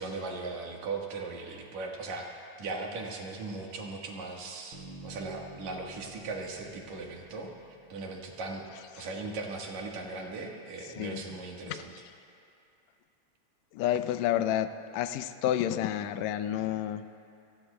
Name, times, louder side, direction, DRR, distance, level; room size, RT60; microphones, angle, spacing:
voice 1, 0.0-7.5 7.9-8.7 9.0-11.9, right 3 dB, 75° right, 0 dB, 2.8 m, -38 dB
Bass guitar, 4.7-8.7, right 2 dB, 40° right, 3.2 m, -50 dB
voice 2, 13.7-14.7 14.9-17.0, left 11 dB, 80° left, 10 dB, 1.8 m, -29 dB
29.5 x 18.5 x 2.2 m, 2.5 s
omnidirectional pair, 3.3 m